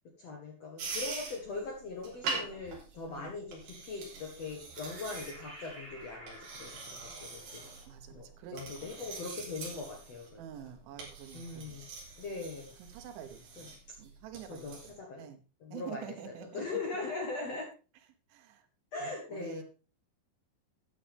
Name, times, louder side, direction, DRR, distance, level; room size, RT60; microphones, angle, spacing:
voice 1, 0.2-7.6 8.1-8.3 8.5-10.4 11.3-11.9 12.2-12.7 13.6-13.7 14.5-15.3 15.6-17.7 18.9-19.6, left 3 dB, 60° left, 1 dB, 1.8 m, -40 dB
sound 1, 0.8-14.9, right 4 dB, 50° right, 4.7 m, -44 dB
sound 2, 4.7-9.6, right 1 dB, 5° right, 3.4 m, -53 dB
voice 2, 7.9-8.6 10.4-11.8 12.9-13.7 14.0-15.4 15.7-16.8 18.3-18.7 19.3-19.6, right 9 dB, 85° right, 8 dB, 3.7 m, -47 dB
13.0 x 9.1 x 3.5 m, 0.33 s
omnidirectional pair, 5.3 m